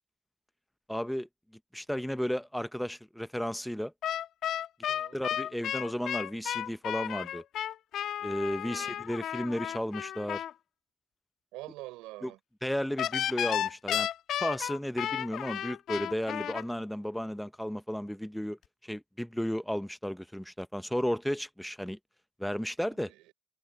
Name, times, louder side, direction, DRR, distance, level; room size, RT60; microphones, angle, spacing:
voice 1, 0.9-1.3 1.7-3.9 5.1-7.4 8.2-10.4 12.2-12.3 12.6-14.1 14.4-22.0 22.4-23.1, equal, 5° left, 0.9 m, -33 dB
sound 1, 4.0-10.5 13.0-16.6, left 11 dB, 70° left, 1.7 m, -33 dB
voice 2, 4.9-5.2 8.6-9.0 11.5-12.4 22.9-23.3, right 19 dB, 80° right, 5.3 m, -46 dB
hypercardioid pair, 50°, 0 cm